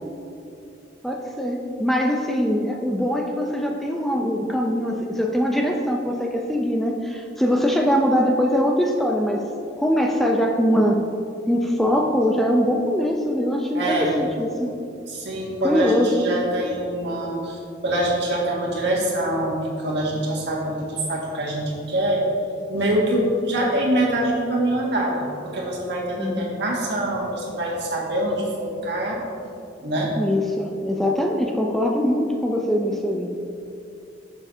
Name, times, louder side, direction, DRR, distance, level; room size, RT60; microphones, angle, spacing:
voice 1, 1.0-9.5 9.8-11.0 11.5-14.7 15.6-16.3 26.2-26.5 30.2-33.3, equal, ahead, 1 dB, 0.4 m, -22 dB
voice 2, 13.7-14.2 15.1-22.3 22.7-29.2 29.8-30.1, right 1 dB, 65° right, -3 dB, 1.8 m, -24 dB
11.0 x 7.2 x 2.7 m, 2.6 s
head